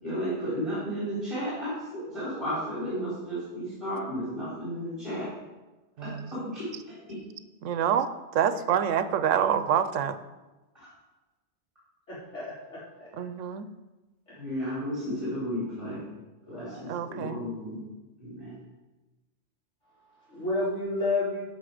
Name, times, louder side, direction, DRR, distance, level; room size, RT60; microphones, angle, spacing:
voice 1, 0.0-5.3 6.0-7.2 10.7-10.9 14.4-16.0 16.5-17.8 18.2-18.6, equal, 25° right, -10 dB, 4.3 m, -33 dB
voice 2, 6.0-6.4 7.6-8.1 8.3-10.2 13.1-13.7 16.9-17.5, right 9 dB, 80° right, 12 dB, 1.0 m, -27 dB
voice 3, 12.1-13.1 14.3-14.4 16.4-16.8 19.8-21.4, left 2 dB, 70° left, -8 dB, 4.4 m, -32 dB
13.0 x 5.9 x 5.0 m, 1.1 s
omnidirectional pair, 1.3 m